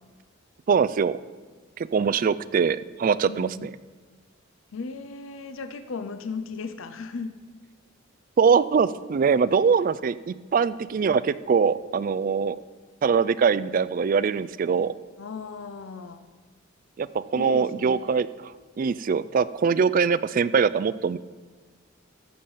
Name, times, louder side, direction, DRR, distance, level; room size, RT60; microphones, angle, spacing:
voice 1, 0.7-1.2 1.8-3.7 8.4-12.6 13.0-14.9 17.0-18.5 18.8-21.2, right 6 dB, 40° right, 17 dB, 0.3 m, -23 dB
voice 2, 3.2-3.7 4.7-7.3 15.2-16.2 17.4-18.2, left 4 dB, 75° left, 9 dB, 0.6 m, -36 dB
14.0 x 7.0 x 5.5 m, 1.4 s
head